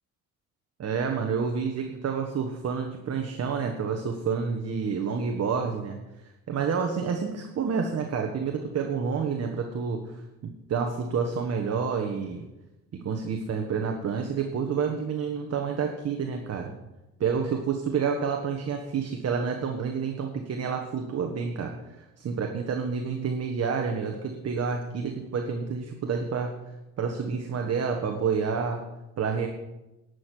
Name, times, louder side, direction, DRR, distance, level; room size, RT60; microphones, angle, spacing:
voice 1, 0.8-6.0 6.5-10.2 10.4-12.4 12.9-16.7 17.2-26.6 27.0-28.8 29.2-29.5, right 6 dB, 55° right, 3 dB, 1.5 m, -29 dB
11.5 x 6.5 x 9.2 m, 0.99 s
cardioid pair, 90°, 30 cm